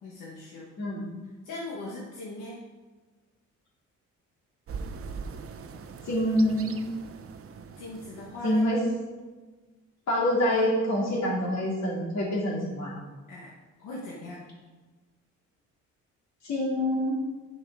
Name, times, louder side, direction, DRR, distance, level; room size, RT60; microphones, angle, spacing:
voice 1, 0.0-0.7 1.4-2.6 7.8-8.6 13.3-13.5 13.8-14.4, left 2 dB, 85° left, -4 dB, 1.6 m, -39 dB
voice 2, 0.8-1.1 6.0-6.8 8.4-8.8 10.1-12.9 16.4-17.2, equal, 65° left, -2 dB, 3.0 m, -26 dB
sound 1, 4.7-8.9, right 5 dB, 50° right, 0.8 m, -41 dB
9.6 x 6.7 x 4.8 m, 1.3 s
cardioid pair, 90°, 30 cm